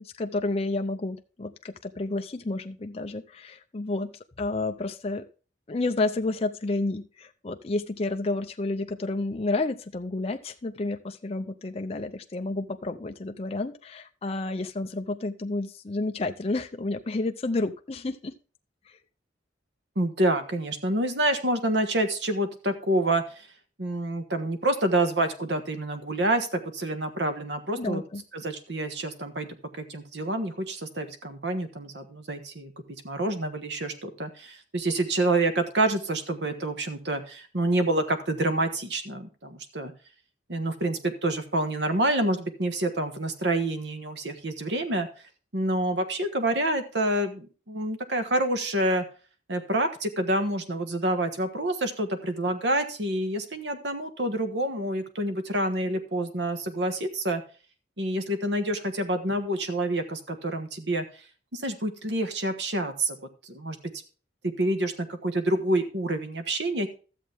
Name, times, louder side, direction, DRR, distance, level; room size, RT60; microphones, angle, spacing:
voice 1, 0.0-5.3 5.7-18.3 18.9-19.0 27.8-28.2, left 2 dB, 35° left, 5 dB, 0.5 m, -30 dB
voice 2, 19.9-23.5 23.8-28.0 28.3-32.7 33.0-39.9 40.5-45.1 45.5-49.0 49.5-57.4 58.0-61.0 61.5-63.2 63.4-63.8 64.4-66.9, right 1 dB, 65° right, 8 dB, 1.4 m, -27 dB
13.0 x 7.3 x 3.5 m, 0.36 s
head